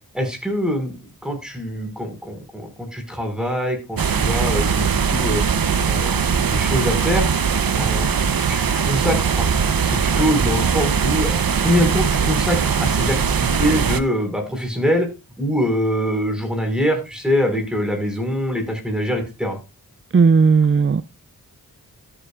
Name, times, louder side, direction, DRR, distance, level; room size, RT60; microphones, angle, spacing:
voice 1, 0.1-0.9 1.2-5.4 5.8-7.2 7.7-8.1 8.5-9.5 9.8-11.4 11.6-15.1 15.4-19.6, equal, ahead, 4 dB, 5.3 m, -23 dB
sound 1, 4.0-14.0, right 6 dB, 65° right, 0.9 m, -20 dB
voice 2, 20.1-21.0, right 5 dB, 35° right, 16 dB, 0.5 m, -14 dB
13.5 x 9.0 x 2.5 m, 0.27 s
cardioid pair, 40°, 37 cm